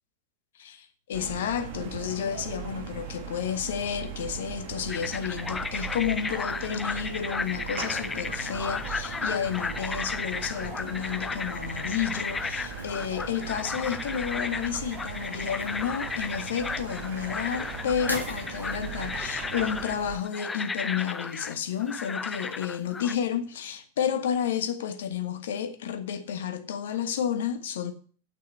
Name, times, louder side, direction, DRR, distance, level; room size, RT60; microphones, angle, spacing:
voice 1, 0.6-27.9, left 8 dB, 60° left, 1.3 m, -31 dB
sound 1, 1.1-20.2, right 8 dB, 50° right, 1.7 m, -39 dB
sound 2, 4.9-23.1, left 4 dB, 15° left, 0.5 m, -34 dB
sound 3, 7.4-19.1, right 1 dB, 85° right, 1.6 m, -44 dB
8.6 x 6.5 x 7.8 m
figure-of-eight pair, 90°, 0 cm